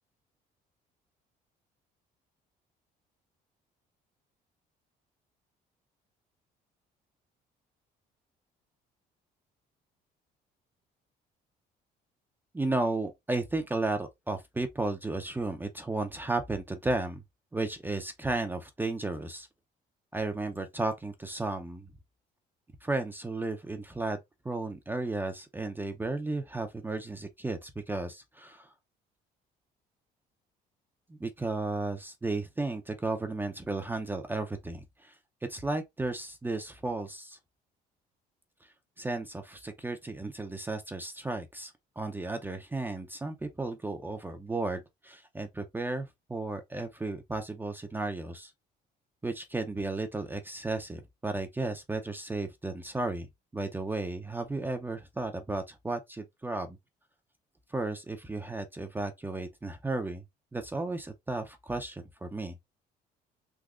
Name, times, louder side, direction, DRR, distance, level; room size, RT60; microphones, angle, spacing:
voice 1, 12.5-17.2 17.5-19.5 20.1-21.9 22.8-24.2 24.4-28.7 31.1-35.2 35.5-37.4 39.0-48.5 49.2-53.3 53.5-56.8 57.7-60.2 60.5-62.6, right 2 dB, 10° right, 0.5 m, -34 dB
3.6 x 2.9 x 2.4 m
cardioid pair, 110°, 17 cm